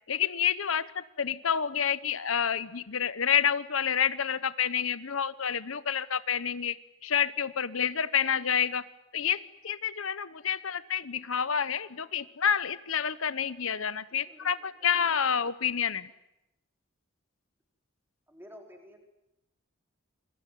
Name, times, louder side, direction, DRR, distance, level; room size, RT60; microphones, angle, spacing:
voice 1, 0.1-6.8 7.0-8.8 9.1-16.1, left 8 dB, 75° left, 15 dB, 1.0 m, -29 dB
voice 2, 14.1-14.9 18.3-19.0, equal, 10° right, 3 dB, 4.5 m, -52 dB
28.0 x 22.5 x 9.3 m, 0.85 s
head